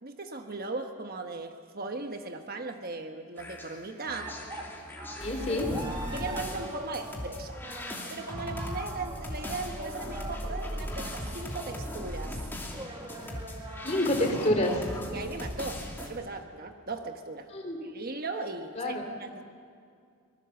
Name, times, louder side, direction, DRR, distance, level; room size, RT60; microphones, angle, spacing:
voice 1, 0.0-4.4 6.1-7.6 8.0-12.4 15.1-17.5 17.8-19.4, right 3 dB, 40° right, 5 dB, 1.2 m, -38 dB
sound 1, 3.4-16.1, left 1 dB, 10° left, 2.8 m, -38 dB
sound 2, 4.1-14.0, right 1 dB, 20° right, 2.1 m, -43 dB
voice 2, 5.2-5.9 13.8-14.8 17.5-17.8 18.8-19.0, left 1 dB, 30° left, 3 dB, 3.3 m, -28 dB
25.0 x 20.5 x 7.1 m, 2.3 s
head